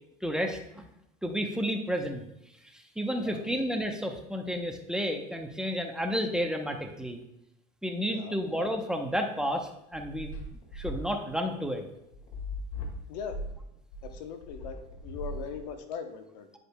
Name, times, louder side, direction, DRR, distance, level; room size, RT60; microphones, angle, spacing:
voice 1, 0.2-0.9 1.2-2.2 3.0-7.2 7.8-10.3 10.7-11.8, equal, 5° right, 3 dB, 0.7 m, -31 dB
sound 1, 9.5-16.0, left 1 dB, 70° left, 1.9 m, -39 dB
voice 2, 14.0-14.8 15.0-16.5, left 6 dB, 90° left, 7 dB, 0.9 m, -39 dB
9.7 x 5.1 x 2.2 m, 0.83 s
supercardioid pair, 115°, 21 cm